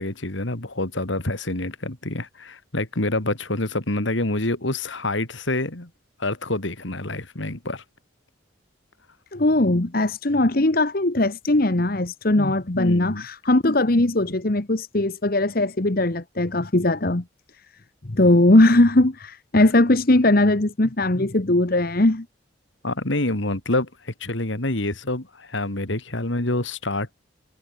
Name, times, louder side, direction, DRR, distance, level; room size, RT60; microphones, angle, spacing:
voice 1, 0.0-5.9 6.2-7.8 12.4-13.2 22.8-27.1, left 2 dB, 70° left, 2.7 m, -27 dB
voice 2, 9.3-17.2 18.0-22.2, left 2 dB, 45° left, 1.2 m, -19 dB
head